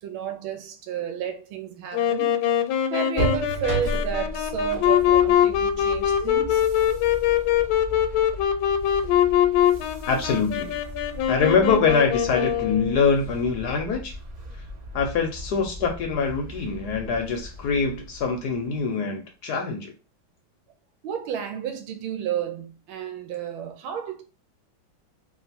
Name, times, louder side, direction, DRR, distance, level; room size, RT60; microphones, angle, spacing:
voice 1, 0.0-2.4 2.9-6.6 21.0-24.2, right 8 dB, 90° right, 1.5 m, -31 dB
Wind instrument woodwind instrument, 1.9-13.1, left 10 dB, 85° left, 1.4 m, -23 dB
sound 1, 3.1-18.9, right 1 dB, 30° right, 0.8 m, -36 dB
voice 2, 10.0-10.7 11.3-14.2 14.9-19.9, left 5 dB, 65° left, 1.0 m, -24 dB
3.7 x 2.5 x 4.1 m
omnidirectional pair, 2.2 m